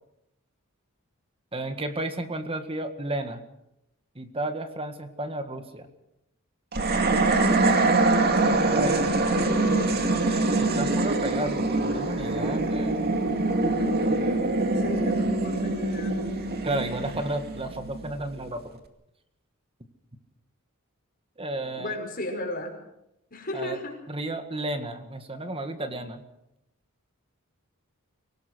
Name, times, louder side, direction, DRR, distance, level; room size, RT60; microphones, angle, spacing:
voice 1, 1.5-3.4 4.2-5.9 8.7-9.1 10.8-13.2 16.6-18.6 21.4-21.9 23.5-23.8 24.1-26.2, right 1 dB, 25° right, 8 dB, 1.8 m, -32 dB
sound 1, 6.7-18.1, right 2 dB, 45° right, 2.3 m, -24 dB
voice 2, 7.3-7.9 8.8-10.6 14.7-16.2 21.8-22.7 23.3-24.0, left 1 dB, 40° left, 2 dB, 5.7 m, -36 dB
25.0 x 18.5 x 6.3 m, 0.84 s
head